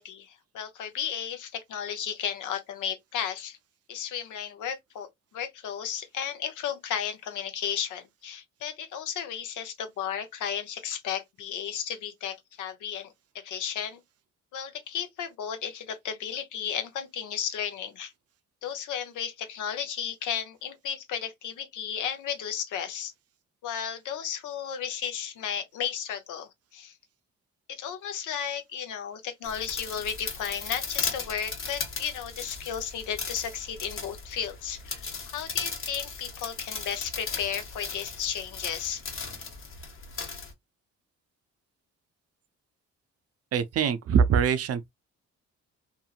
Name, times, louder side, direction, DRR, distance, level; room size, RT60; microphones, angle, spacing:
voice 1, 0.0-3.6 3.9-5.1 5.3-14.0 14.5-18.1 18.6-23.1 23.6-27.0 27.7-39.0, left 8 dB, 80° left, 0.8 m, -34 dB
sound 1, 29.4-40.5, left 5 dB, 45° left, 1.1 m, -37 dB
voice 2, 43.5-44.9, right 7 dB, 55° right, 0.5 m, -23 dB
2.8 x 2.6 x 2.4 m
cardioid pair, 90°, 30 cm